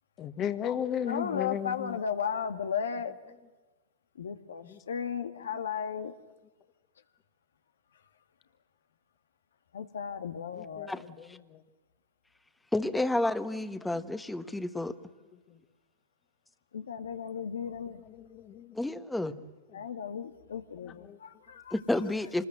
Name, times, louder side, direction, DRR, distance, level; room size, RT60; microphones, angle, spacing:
voice 1, 0.2-2.0 4.6-4.8 10.6-10.9 11.5-11.6 15.5-15.6 18.1-18.8 21.0-21.2, left 9 dB, 30° left, 9 dB, 1.6 m, -35 dB
voice 2, 1.1-3.2 4.2-6.1 9.7-11.0 16.7-18.0 19.7-21.7, left 7 dB, 85° left, 9 dB, 1.8 m, -35 dB
voice 3, 10.9-11.4 12.7-15.0 18.7-19.3 21.7-22.5, left 2 dB, 5° left, 11 dB, 1.3 m, -31 dB
26.0 x 20.5 x 7.9 m, 1.2 s
hypercardioid pair, 120°, 0 cm